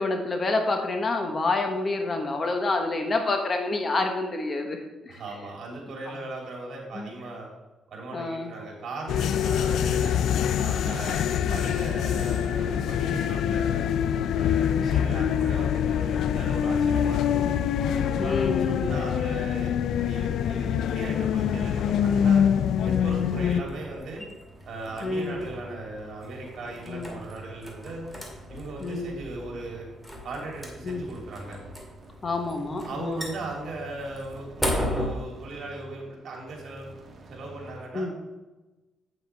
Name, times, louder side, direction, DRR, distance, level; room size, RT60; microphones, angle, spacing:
voice 1, 0.0-5.2 6.9-7.1 8.1-8.5 15.2-15.4 17.3-17.5 18.2-18.9 23.3-23.6 25.0-25.4 26.9-27.1 28.8-29.1 30.8-31.0 32.2-33.2 37.9-38.1, left 3 dB, 35° left, 4 dB, 1.3 m, -28 dB
voice 2, 5.1-7.5 7.9-10.2 10.5-13.9 14.3-17.5 18.0-22.5 22.8-24.2 24.6-28.0 28.5-29.9 30.2-31.6 32.8-36.9 37.3-38.1, right 2 dB, 60° right, -1 dB, 3.2 m, -38 dB
sound 1, 9.1-23.6, left 8 dB, 75° left, 0.4 m, -25 dB
sound 2, 18.9-37.9, right 1 dB, 45° right, 1.4 m, -48 dB
sound 3, 23.5-35.1, left 1 dB, 5° left, 2.2 m, -37 dB
8.6 x 7.7 x 3.5 m, 1.1 s
cardioid pair, 90°, 0 cm